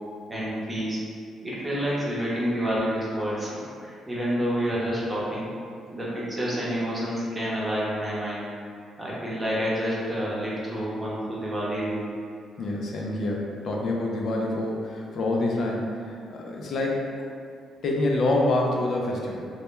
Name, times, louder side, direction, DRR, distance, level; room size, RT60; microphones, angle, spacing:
voice 1, 0.3-1.0 1.4-5.5 5.9-8.5 9.0-12.1, equal, 15° right, -7 dB, 0.7 m, -28 dB
voice 2, 12.6-17.2 17.8-19.5, left 2 dB, 60° left, -1 dB, 0.4 m, -27 dB
2.2 x 2.1 x 2.9 m, 2.3 s
cardioid pair, 90°, 0 cm